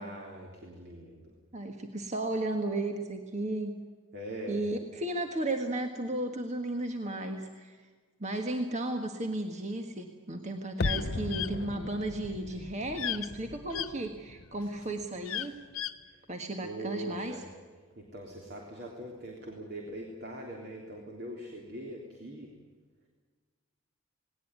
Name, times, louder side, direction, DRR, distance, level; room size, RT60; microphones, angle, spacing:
voice 1, 0.0-1.4 4.1-4.6 16.1-16.2 16.6-17.5 18.0-22.5, right 1 dB, 50° right, 0 dB, 3.5 m, -42 dB
voice 2, 1.5-3.8 4.5-7.9 8.2-15.5 16.3-17.3, right 1 dB, 35° right, 4 dB, 1.5 m, -34 dB
sound 1, 10.8-11.0 11.3-11.5 13.0-13.3 13.7-13.9 15.3-15.9, left 12 dB, 80° left, 1.1 m, -34 dB
sound 2, 10.8-15.7 16.0-16.1, left 2 dB, 50° left, 0.7 m, -38 dB
19.0 x 19.0 x 9.6 m, 1.4 s
head